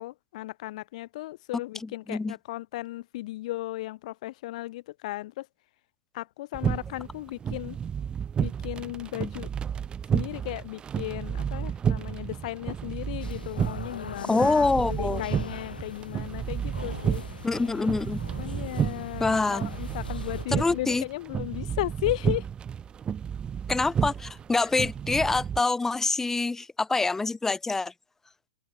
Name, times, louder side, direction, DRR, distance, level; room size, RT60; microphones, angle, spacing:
voice 1, 0.0-5.5 6.1-7.8 8.4-9.5 10.1-17.2 18.4-22.5, left 17 dB, 50° left, 0.8 m, -35 dB
voice 2, 1.8-2.3 14.3-15.2 17.4-18.2 19.2-19.7 20.5-21.0 23.7-27.9, left 3 dB, 10° left, 1.7 m, -26 dB
sound 1, 6.5-25.6, right 8 dB, 20° right, 2.5 m, -31 dB
sound 2, 13.2-20.5, left 6 dB, 70° left, 1.9 m, -42 dB
open air
figure-of-eight pair, 105°, 5 cm